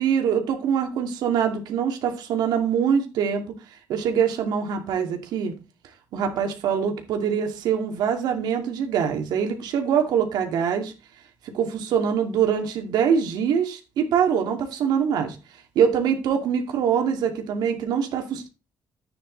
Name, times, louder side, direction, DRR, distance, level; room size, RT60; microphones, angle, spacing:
voice 1, 0.0-3.4 3.9-5.5 6.1-10.9 11.5-15.4 15.8-18.5, right 7 dB, 85° right, 2.4 m, -24 dB
11.0 x 9.0 x 4.0 m
cardioid pair, 100°, 7 cm